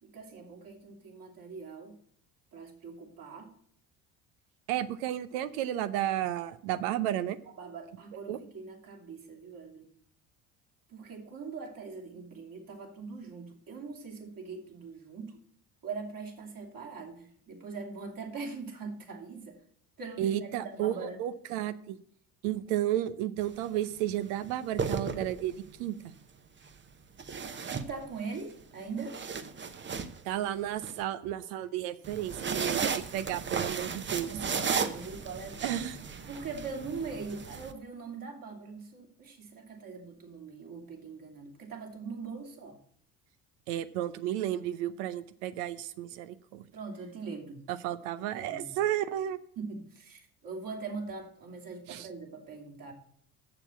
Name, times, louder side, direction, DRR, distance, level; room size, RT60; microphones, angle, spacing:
voice 1, 0.0-2.0 2.5-3.5 7.6-9.9 10.9-15.3 15.8-19.6 20.0-21.2 27.7-29.2 34.2-35.8 36.3-42.8 46.7-47.7 48.3-48.8 49.6-52.9, right 4 dB, 45° right, 2 dB, 3.0 m, -42 dB
voice 2, 4.7-7.4 8.3-8.4 20.2-22.0 22.4-25.9 30.3-34.3 35.6-36.0 43.7-46.6 47.7-49.4 51.9-52.1, right 12 dB, 70° right, 13 dB, 0.8 m, -32 dB
sound 1, 23.4-23.6 24.5-25.7 27.2-28.4 28.8-30.9 32.0-37.7, right 5 dB, 25° right, 0.9 m, -35 dB
7.2 x 6.9 x 7.1 m, 0.63 s
hypercardioid pair, 60°, 46 cm